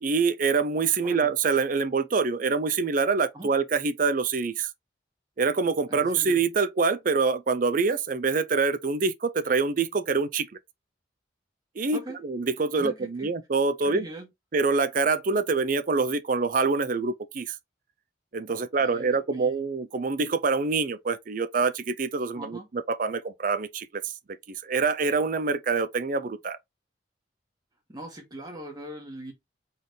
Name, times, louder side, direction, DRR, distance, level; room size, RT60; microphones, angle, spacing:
voice 1, 0.0-4.7 5.4-10.5 11.8-14.0 14.5-17.6 18.3-24.1 24.5-26.6, right 4 dB, 50° right, 0.5 m, -25 dB
voice 2, 5.9-6.4 11.9-12.2 12.8-13.3 13.8-14.3 18.5-19.6 22.4-22.7 27.9-29.3, right 1 dB, 20° right, 1.9 m, -41 dB
4.1 x 3.8 x 3.3 m
head